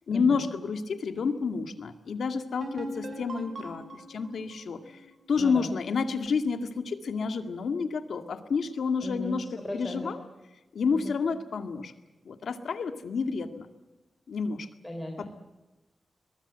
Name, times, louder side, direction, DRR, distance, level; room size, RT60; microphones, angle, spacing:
voice 1, 0.1-3.8 4.1-4.8 5.3-9.5 9.7-10.2 10.8-11.9 12.3-13.7 14.3-14.7, left 5 dB, 80° left, 8 dB, 1.9 m, -29 dB
sound 1, 2.6-6.2, right 1 dB, 55° right, 4.3 m, -42 dB
voice 2, 5.4-5.7 9.0-10.1 10.9-11.1 14.8-15.3, left 1 dB, 10° left, 2 dB, 3.4 m, -37 dB
22.5 x 22.0 x 8.0 m, 1.1 s
wide cardioid pair, 145°, 0 cm